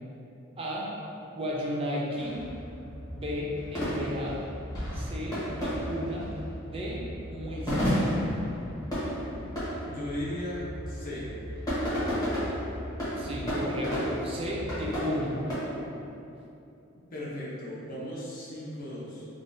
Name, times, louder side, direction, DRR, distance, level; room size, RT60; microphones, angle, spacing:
voice 1, 0.6-0.9 1.3-2.4 3.1-4.4 4.9-6.3 6.6-7.0 7.3-8.0 13.2-15.4, equal, 25° right, -4 dB, 0.4 m, -34 dB
sound 1, 2.2-15.5, equal, 20° left, 0.9 m, -33 dB
voice 2, 9.8-11.3 17.1-19.3, left 1 dB, 40° left, -6 dB, 0.6 m, -36 dB
3.6 x 2.2 x 2.5 m, 2.7 s
head